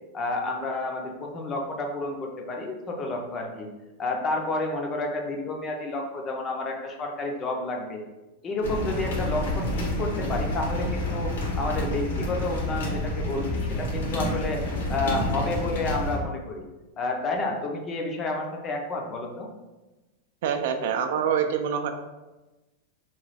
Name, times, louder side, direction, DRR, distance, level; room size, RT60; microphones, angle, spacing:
voice 1, 0.1-3.7 4.0-8.0 8.4-14.6 14.9-16.6 17.0-19.5, left 2 dB, 20° left, 1 dB, 0.4 m, -30 dB
sound 1, 8.6-16.2, left 1 dB, 90° left, 1.1 m, -29 dB
voice 2, 20.4-21.9, right 7 dB, 60° right, 6 dB, 0.3 m, -25 dB
3.0 x 2.2 x 4.0 m, 1.1 s
supercardioid pair, 170°, 0 cm